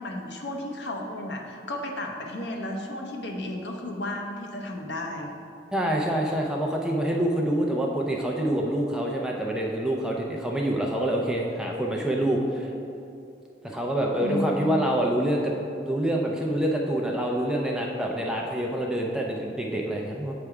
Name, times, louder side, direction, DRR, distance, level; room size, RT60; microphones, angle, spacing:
voice 1, 0.0-5.4 14.2-14.8, left 1 dB, 70° left, 1 dB, 0.7 m, -33 dB
voice 2, 5.7-12.7 13.6-15.5 15.8-20.3, right 1 dB, 5° right, -1 dB, 0.4 m, -26 dB
7.3 x 3.4 x 4.7 m, 2.7 s
head